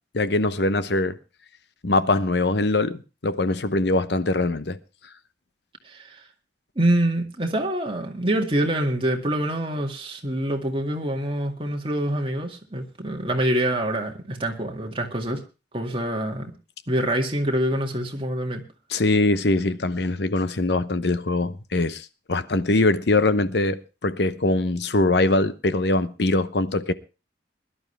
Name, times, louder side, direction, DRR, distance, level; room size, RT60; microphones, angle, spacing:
voice 1, 0.1-1.2 1.8-4.8 18.9-26.9, left 2 dB, 70° left, 0.9 m, -22 dB
voice 2, 5.8-6.2 6.8-15.4 15.7-16.5 16.9-18.6, right 1 dB, 30° right, 2.1 m, -25 dB
21.0 x 11.5 x 3.3 m
head